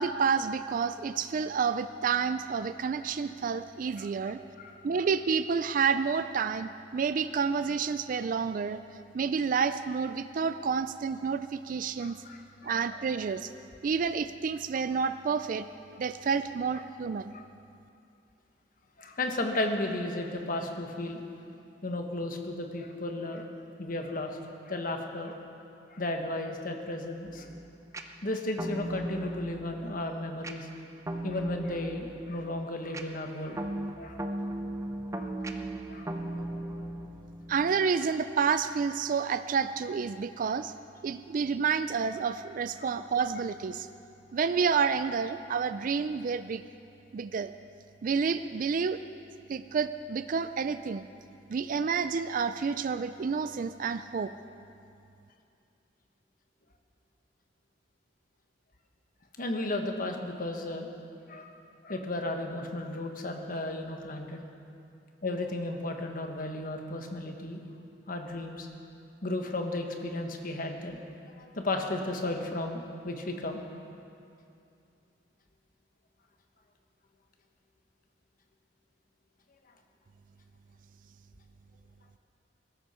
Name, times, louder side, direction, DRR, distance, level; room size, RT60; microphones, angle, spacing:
voice 1, 0.0-4.4 4.8-8.8 9.1-12.2 12.6-13.5 13.8-15.7 16.0-17.3 37.5-40.7 41.0-43.9 44.3-46.6 47.1-47.5 48.0-49.0 49.5-51.1 51.5-54.3, right 6 dB, 50° right, 11 dB, 0.4 m, -29 dB
voice 2, 4.6-5.1 12.0-12.8 17.3-17.4 19.0-21.2 21.8-23.5 23.8-24.4 24.7-25.4 25.9-27.5 28.2-30.7 31.2-33.6 34.0-34.2 35.1-35.3 35.9-36.1 42.8-42.9 59.4-60.9 61.3-61.5 61.8-64.4 65.2-67.6 68.1-68.7 69.2-71.0 71.4-73.6, left 2 dB, 50° left, 4 dB, 1.3 m, -34 dB
sound 1, 27.3-37.9, right 1 dB, 15° right, 0.7 m, -38 dB
20.5 x 12.5 x 4.4 m, 2.6 s
head